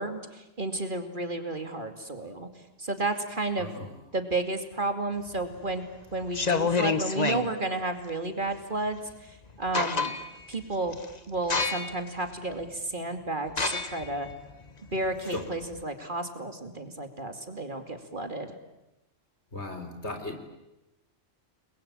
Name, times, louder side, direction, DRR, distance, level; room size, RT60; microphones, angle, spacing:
voice 1, 0.0-2.5 2.8-3.7 4.1-5.8 6.1-9.0 9.6-10.2 10.5-10.9 11.3-14.3 14.9-18.5, right 2 dB, 40° right, 7 dB, 2.7 m, -32 dB
voice 2, 3.6-3.9 15.3-15.4 19.5-20.5, left 2 dB, 60° left, 6 dB, 4.2 m, -36 dB
sound 1, 5.3-5.7 6.2-7.5 9.1-9.2 9.5-10.4 10.9-11.1 11.5-12.1 12.6-12.7 13.5-15.8, left 4 dB, 35° left, 1.5 m, -28 dB
30.0 x 22.0 x 8.8 m, 0.94 s
omnidirectional pair, 1.3 m